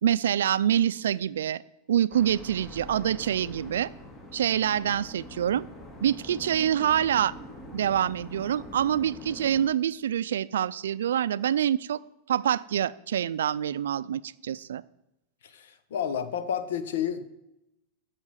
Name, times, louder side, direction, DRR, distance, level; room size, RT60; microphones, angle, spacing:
voice 1, 0.0-1.6 1.9-3.9 4.3-5.7 6.0-7.4 7.7-12.0 12.3-14.8, right 10 dB, 85° right, 17 dB, 0.4 m, -26 dB
sound 1, 2.1-9.6, equal, 25° left, 2.9 m, -44 dB
voice 2, 15.4-17.2, left 8 dB, 80° left, 11 dB, 1.1 m, -31 dB
14.0 x 5.8 x 6.3 m, 0.88 s
hypercardioid pair, 110°, 0 cm